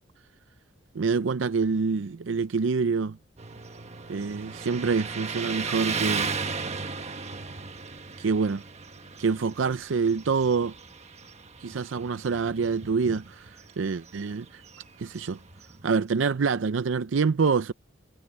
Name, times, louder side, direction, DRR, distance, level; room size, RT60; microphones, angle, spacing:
voice 1, 0.9-3.2 4.1-6.3 8.2-8.6 9.2-10.7 11.6-14.6 15.0-15.4 15.8-17.7, right 5 dB, 80° right, 0.5 m, -26 dB
Motorcycle, 3.4-16.0, right 4 dB, 35° right, 1.4 m, -36 dB
head